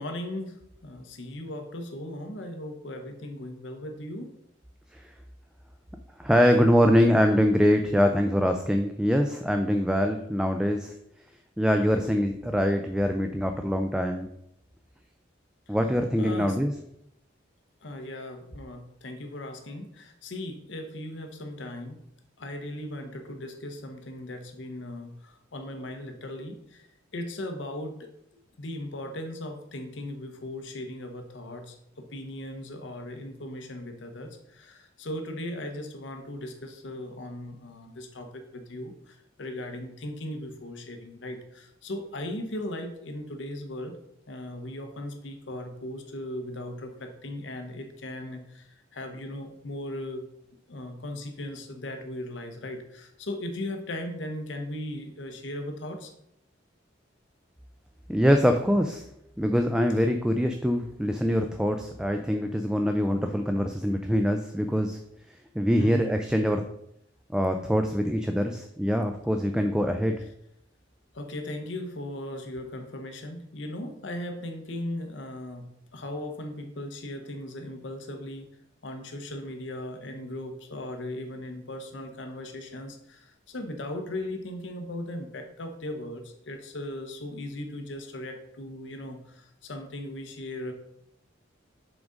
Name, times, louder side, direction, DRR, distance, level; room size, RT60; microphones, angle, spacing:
voice 1, 0.0-4.3 15.7-15.8 16.2-16.6 17.8-22.0 22.4-26.9 27.1-28.1 28.6-44.0 44.3-50.2 50.7-56.1 65.8-66.0 71.1-78.5 78.8-90.7, left 1 dB, 70° left, 5 dB, 0.8 m, -38 dB
voice 2, 6.2-10.9 11.6-14.3 15.7-16.7 58.1-59.1 59.4-65.0 65.6-66.6 67.3-70.2, equal, 5° right, 5 dB, 0.3 m, -24 dB
6.1 x 3.8 x 5.0 m, 0.76 s
head